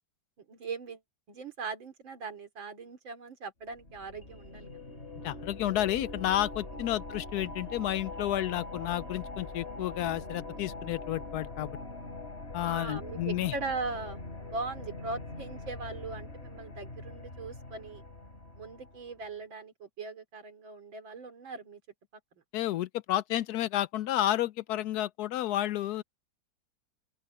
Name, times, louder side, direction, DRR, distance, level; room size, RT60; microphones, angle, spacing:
voice 1, 0.4-1.0 1.3-5.1 6.7-6.9 12.6-18.0 18.6-21.8, right 4 dB, 85° right, 3.8 m, -40 dB
sound 1, 3.7-19.2, left 2 dB, 35° left, 3.9 m, -43 dB
voice 2, 5.2-11.8 12.5-13.5 22.5-26.0, left 13 dB, 70° left, 0.9 m, -31 dB
open air
omnidirectional pair, 2.1 m